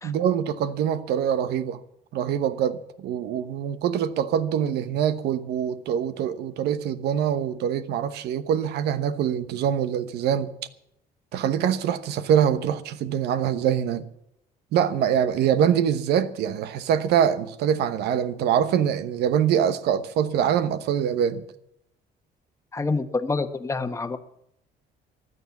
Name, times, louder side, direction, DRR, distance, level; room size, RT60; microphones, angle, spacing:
voice 1, 0.0-1.8 2.1-10.5 11.3-14.1 14.7-21.4, right 9 dB, 75° right, 1.1 m, -24 dB
voice 2, 22.7-24.2, left 3 dB, 15° left, 1.2 m, -27 dB
15.5 x 11.0 x 7.2 m
cardioid pair, 110°, 17 cm